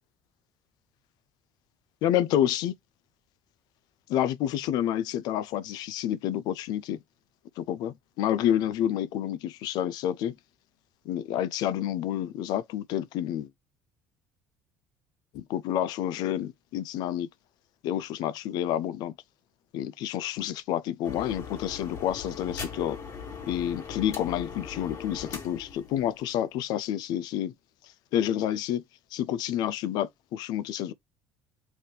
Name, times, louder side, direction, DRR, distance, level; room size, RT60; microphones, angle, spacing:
voice 1, 2.0-2.7 4.1-7.0 7.6-10.4 11.0-13.5 15.3-17.3 17.8-19.1 19.7-23.0 23.5-27.5 28.1-28.8 29.1-30.9, left 11 dB, 70° left, 0.5 m, -29 dB
sound 1, 21.0-26.5, left 5 dB, 50° left, 1.9 m, -40 dB
3.5 x 2.7 x 3.8 m
supercardioid pair, 75°, 7 cm